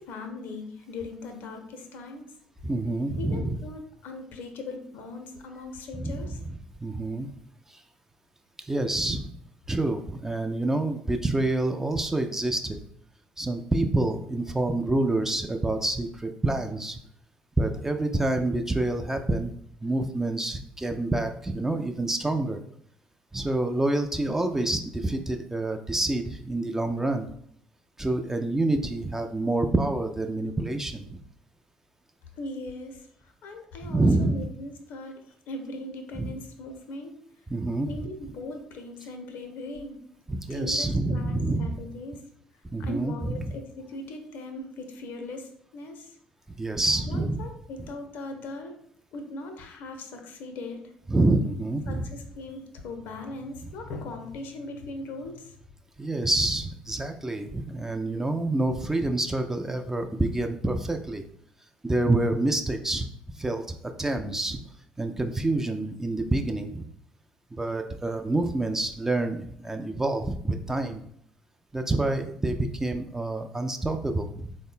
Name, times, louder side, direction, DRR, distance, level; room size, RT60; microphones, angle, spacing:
voice 1, 0.0-2.3 3.2-6.4 32.4-37.2 37.8-40.0 40.5-42.2 42.8-46.2 47.1-48.8 49.1-50.8 51.9-55.6, left 2 dB, 55° left, 5 dB, 0.6 m, -39 dB
voice 2, 2.6-3.6 6.0-6.3 6.8-7.3 8.7-9.3 9.7-12.8 13.4-17.0 17.6-19.5 19.8-22.6 23.3-27.3 28.0-31.2 33.8-34.4 36.2-36.3 37.5-37.9 40.3-41.8 42.7-43.5 46.6-47.4 51.1-52.1 56.0-61.2 61.8-63.1 63.4-64.6 65.0-66.8 67.5-71.0 71.7-74.5, right 2 dB, 10° right, 5 dB, 0.3 m, -27 dB
3.7 x 2.1 x 3.5 m, 0.67 s
figure-of-eight pair, 50°, 4 cm